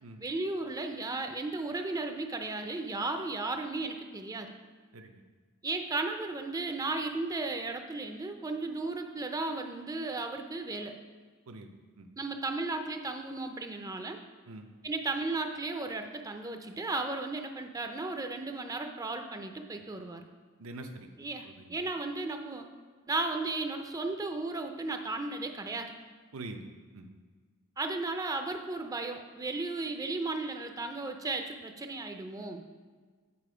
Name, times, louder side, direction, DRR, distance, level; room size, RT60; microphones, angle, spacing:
voice 1, 0.2-4.5 5.6-11.0 12.2-14.2 14.8-20.3 21.2-22.7 23.1-25.9 27.8-32.6, right 3 dB, 15° right, 5 dB, 0.5 m, -35 dB
voice 2, 20.6-21.1 21.4-21.8 26.3-26.7 26.9-27.1, right 2 dB, 75° right, 5 dB, 0.7 m, -44 dB
8.6 x 4.2 x 4.9 m, 1.5 s
head